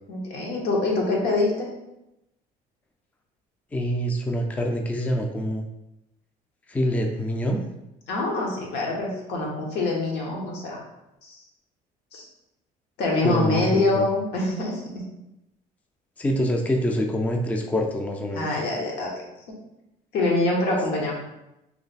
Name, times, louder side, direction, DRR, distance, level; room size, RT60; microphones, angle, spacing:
voice 1, 0.1-1.7 8.1-10.8 11.2-11.4 12.1-12.2 13.0-15.0 18.3-19.1 20.1-21.1, left 2 dB, 80° left, -2 dB, 1.0 m, -25 dB
voice 2, 3.7-5.7 6.7-7.6 13.2-14.0 16.2-18.5, equal, 10° left, 3 dB, 0.3 m, -25 dB
3.2 x 2.2 x 4.0 m, 0.90 s
cardioid pair, 110°, 17 cm